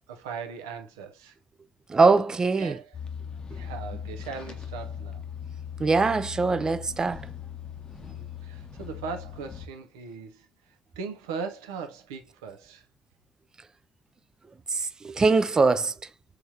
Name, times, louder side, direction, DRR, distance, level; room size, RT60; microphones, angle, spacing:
voice 1, 0.0-1.4 2.6-3.0 3.5-5.2 8.0-12.9, right 5 dB, 85° right, 0.5 m, -39 dB
voice 2, 1.9-2.8 5.8-7.2 14.7-15.9, right 4 dB, 30° right, 0.3 m, -22 dB
sound 1, 2.9-9.7, left 8 dB, 40° left, 0.6 m, -39 dB
3.5 x 3.1 x 2.7 m
hypercardioid pair, 45°, 2 cm